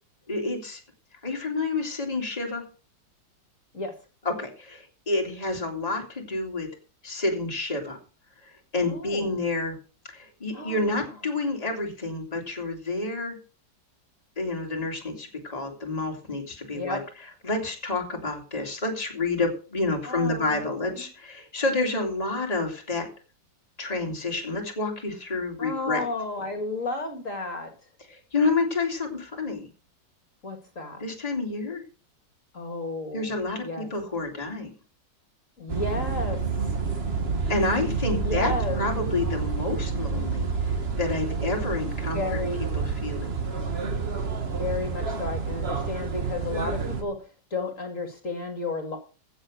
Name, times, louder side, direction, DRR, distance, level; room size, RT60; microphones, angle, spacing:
voice 1, 0.3-0.8 1.2-2.6 4.2-6.7 7.0-8.0 8.4-9.7 10.1-13.4 14.4-17.0 17.4-23.1 23.8-26.1 28.1-29.7 31.0-31.8 33.1-34.7 37.5-42.2 42.7-43.5, left 3 dB, 20° left, 1 dB, 2.7 m, -29 dB
voice 2, 8.8-9.3 10.5-10.9 16.7-17.0 20.0-21.0 25.6-27.7 30.4-31.0 32.5-33.3 33.6-33.9 35.6-36.4 38.1-38.8 42.1-42.6 44.5-47.2 47.5-49.0, left 3 dB, 45° left, 6 dB, 2.4 m, -32 dB
sound 1, 35.7-47.0, right 5 dB, 35° right, 1.8 m, -29 dB
15.0 x 6.4 x 6.4 m, 0.35 s
omnidirectional pair, 2.0 m